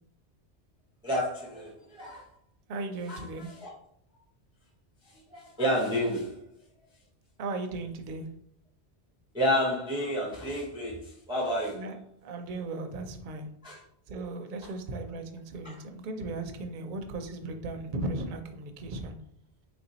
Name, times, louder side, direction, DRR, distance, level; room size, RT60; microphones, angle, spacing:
voice 1, 1.0-2.3 3.1-3.7 5.3-6.4 9.3-11.8 13.6-13.8 15.6-15.7, equal, 5° right, -4 dB, 0.5 m, -30 dB
voice 2, 2.7-3.5 7.4-8.3 11.7-12.0 12.2-13.5 14.1-19.2, right 2 dB, 60° right, 6 dB, 0.6 m, -36 dB
3.2 x 2.6 x 4.0 m, 0.70 s
omnidirectional pair, 1.1 m